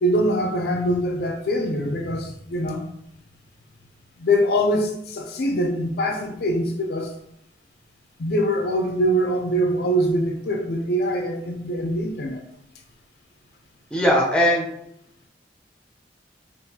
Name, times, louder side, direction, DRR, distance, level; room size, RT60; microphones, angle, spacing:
voice 1, 0.0-2.9 4.2-7.1 8.2-12.4, equal, 55° left, 3 dB, 0.4 m, -23 dB
voice 2, 13.9-14.7, equal, 5° left, -2 dB, 0.5 m, -19 dB
3.7 x 2.5 x 2.8 m, 0.73 s
head